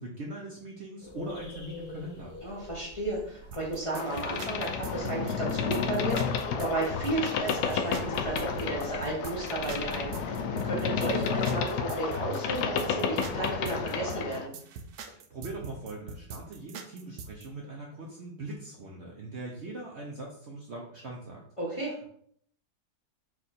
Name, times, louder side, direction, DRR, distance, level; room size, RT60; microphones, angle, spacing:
voice 1, 0.0-2.3 15.1-21.4 21.8-22.1, right 2 dB, 55° right, -2 dB, 0.8 m, -41 dB
sound 1, 1.0-10.4, left 1 dB, 50° left, 1.0 m, -48 dB
voice 2, 2.4-14.5 21.6-21.9, right 2 dB, 25° left, -5 dB, 0.7 m, -33 dB
sound 2, 3.5-17.5, right 5 dB, 75° right, 1.1 m, -43 dB
Boat Water vehicle, 3.9-14.5, left 6 dB, 75° left, 1.1 m, -31 dB
4.6 x 2.5 x 4.1 m, 0.63 s
omnidirectional pair, 1.8 m